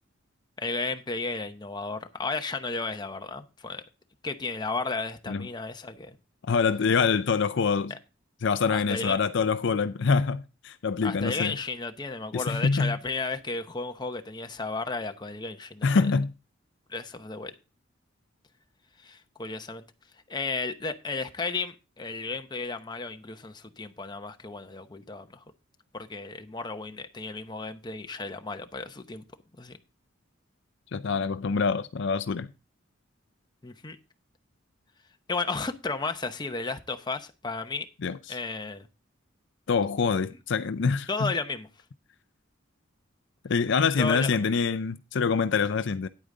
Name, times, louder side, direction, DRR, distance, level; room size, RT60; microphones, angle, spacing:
voice 1, 0.6-3.8 4.2-6.2 7.9-8.0 8.7-9.2 11.0-15.9 16.9-17.5 19.0-19.8 20.3-25.4 25.9-29.2 29.6-29.8 33.6-34.0 35.3-37.9 38.3-38.9 41.1-41.7 44.0-44.5, left 3 dB, 20° left, 0.8 m, -33 dB
voice 2, 6.5-7.9 8.4-11.6 12.3-12.9 15.8-16.3 30.9-32.5 38.0-38.4 39.7-41.3 43.4-46.1, left 5 dB, 65° left, 0.5 m, -25 dB
9.6 x 8.7 x 3.8 m
head